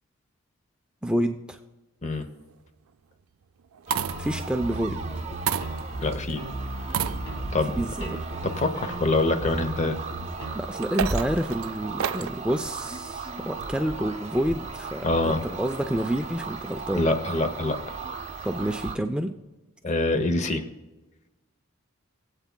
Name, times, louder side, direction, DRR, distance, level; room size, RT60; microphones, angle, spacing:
voice 1, 1.0-1.6 4.2-5.0 7.7-8.2 10.5-17.0 18.4-19.3, right 1 dB, 5° right, 5 dB, 0.3 m, -28 dB
sound 1, 2.2-2.6 3.6-4.5 5.5-6.2 6.8-7.6 8.3-8.4 10.6-12.4 13.6-14.1, right 8 dB, 75° right, 0.4 m, -31 dB
sound 2, 3.9-19.0, right 4 dB, 30° right, 0.7 m, -37 dB
sound 3, 4.1-10.5, right 1 dB, 85° left, 3.8 m, -35 dB
voice 2, 6.0-6.4 7.5-7.8 8.4-10.1 15.0-15.4 16.9-18.0 19.8-20.7, left 2 dB, 35° left, 8 dB, 0.7 m, -25 dB
21.0 x 8.2 x 2.2 m, 1.1 s
head